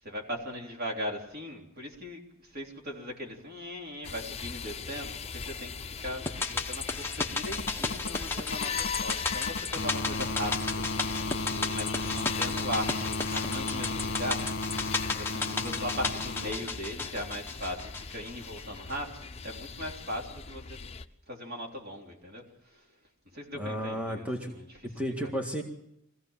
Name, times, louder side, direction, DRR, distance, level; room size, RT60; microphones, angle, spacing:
voice 1, 0.0-11.3 11.5-14.5 15.2-20.8 21.3-22.9 23.3-24.7 25.2-25.3, equal, 50° right, 1 dB, 3.7 m, -39 dB
sound 1, 4.0-21.1, left 6 dB, 30° left, 0.8 m, -39 dB
sound 2, 5.6-16.5 17.9-18.0, left 2 dB, 50° left, 1.9 m, -35 dB
sound 3, 6.3-18.6 18.9-19.0, left 4 dB, 10° left, 1.1 m, -34 dB
voice 2, 23.5-24.5 24.8-25.6, equal, 5° right, 2 dB, 1.8 m, -33 dB
23.0 x 15.5 x 7.4 m, 0.80 s
head